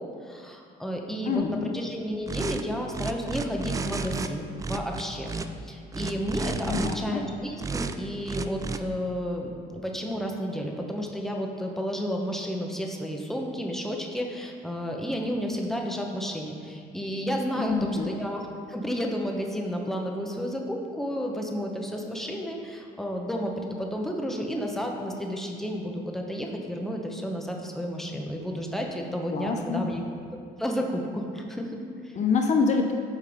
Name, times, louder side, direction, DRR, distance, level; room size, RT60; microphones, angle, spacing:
voice 1, 0.0-5.3 5.6-18.4 18.7-30.0 30.6-32.2, equal, ahead, 1 dB, 1.0 m, -32 dB
voice 2, 1.3-1.8 6.7-7.2 17.6-18.1 29.3-29.9 32.1-32.9, left 5 dB, 45° left, 3 dB, 0.7 m, -26 dB
sound 1, 2.3-2.6 2.9-4.3 4.6-5.5 5.9-6.9 7.6-7.9 8.3-8.8, right 4 dB, 20° right, 0.4 m, -32 dB
9.0 x 5.3 x 5.0 m, 2.3 s
cardioid pair, 110°, 17 cm